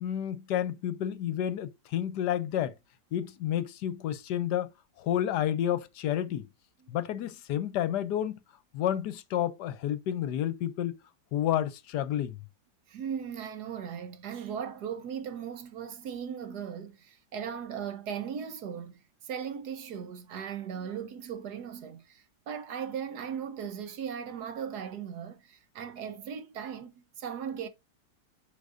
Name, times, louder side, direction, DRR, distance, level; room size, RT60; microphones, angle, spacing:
voice 1, 0.0-2.7 3.1-4.7 5.0-6.5 6.9-8.4 8.7-11.0 11.3-12.4, left 11 dB, 70° left, 1.2 m, -30 dB
voice 2, 12.9-27.7, right 8 dB, 65° right, 1.3 m, -38 dB
8.2 x 5.4 x 2.5 m
omnidirectional pair, 2.0 m